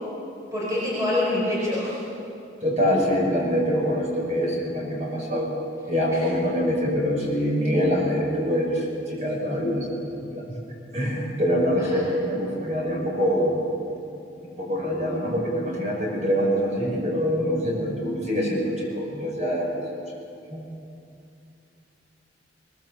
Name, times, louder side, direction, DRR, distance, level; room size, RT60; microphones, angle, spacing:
voice 1, 0.5-2.0 6.1-6.2 11.8-12.3, left 1 dB, 15° right, -6 dB, 4.5 m, -26 dB
voice 2, 2.6-5.5 5.9-10.4 10.9-13.6 14.6-19.8 20.5-20.6, equal, 40° right, -2 dB, 6.0 m, -25 dB
22.0 x 21.0 x 7.3 m, 2.6 s
head